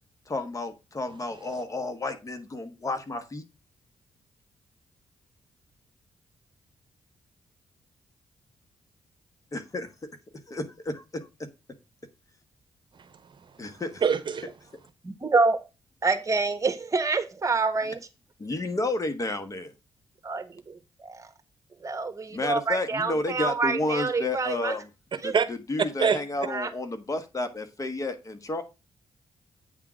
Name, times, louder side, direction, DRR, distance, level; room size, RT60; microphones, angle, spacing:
voice 1, 0.3-3.4 9.5-9.9 10.5-11.5 13.6-14.0 18.4-19.7 22.3-24.9 25.2-28.6, left 2 dB, 35° left, 1.4 m, -31 dB
voice 2, 14.0-14.5 25.3-25.5 26.0-26.2, right 6 dB, 55° right, 0.9 m, -24 dB
voice 3, 15.0-15.6 16.0-18.0 20.2-21.3 21.8-24.7 25.2-25.3 26.5-26.7, right 3 dB, 35° right, 1.4 m, -27 dB
8.7 x 3.7 x 6.2 m
cardioid pair, 70°, 10 cm